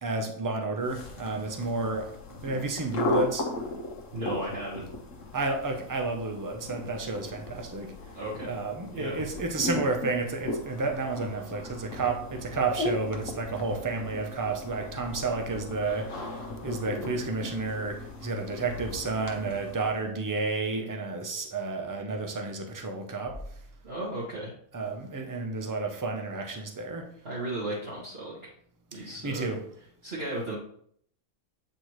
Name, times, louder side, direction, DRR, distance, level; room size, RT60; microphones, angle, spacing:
voice 1, 0.0-2.1 2.4-3.5 5.3-7.9 8.5-23.4 24.7-27.1 28.9-29.6, right 3 dB, 25° right, 4 dB, 0.4 m, -31 dB
sound 1, 0.8-20.1, left 2 dB, 60° left, 1.3 m, -37 dB
voice 2, 4.1-4.9 8.1-8.6 8.9-9.2 23.8-24.5 27.2-28.4 28.9-29.5 30.0-30.6, right 1 dB, 45° right, -7 dB, 1.7 m, -35 dB
8.1 x 4.2 x 3.1 m, 0.65 s
omnidirectional pair, 1.5 m